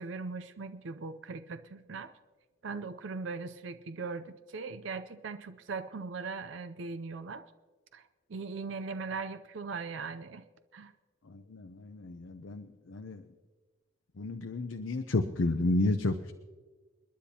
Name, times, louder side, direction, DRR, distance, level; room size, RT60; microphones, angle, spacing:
voice 1, 0.0-2.1 2.6-7.5 7.9-8.0 8.3-10.4 10.7-10.9, right 4 dB, 70° right, 11 dB, 0.5 m, -39 dB
voice 2, 11.3-13.2 14.2-16.3, left 2 dB, 75° left, 7 dB, 0.6 m, -31 dB
29.5 x 10.5 x 2.8 m, 1.4 s
head